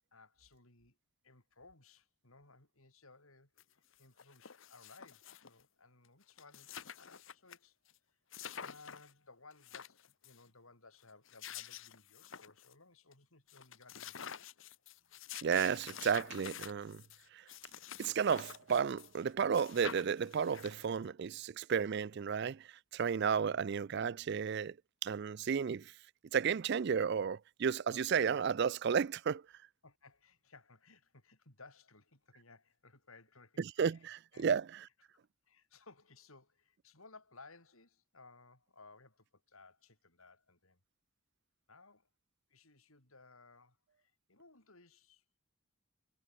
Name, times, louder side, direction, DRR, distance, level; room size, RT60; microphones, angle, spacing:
voice 1, 0.1-1.0 1.2-7.8 8.5-14.6 29.8-34.6 35.5-40.8 41.7-42.1 42.5-45.2, left 3 dB, 80° left, 6.0 m, -60 dB
sound 1, 3.6-3.7 3.9-5.6 6.0-6.1 6.3-7.6 7.9-8.0 8.3-9.1 9.5-10.4 11.1-12.7 13.1-13.2 13.5-19.2 19.5-21.0, left 9 dB, 65° left, 1.0 m, -49 dB
voice 2, 15.4-17.0 17.3-17.4 18.0-24.8 25.0-25.9 26.3-29.4 33.6-34.6, right 6 dB, 50° right, 0.4 m, -33 dB
head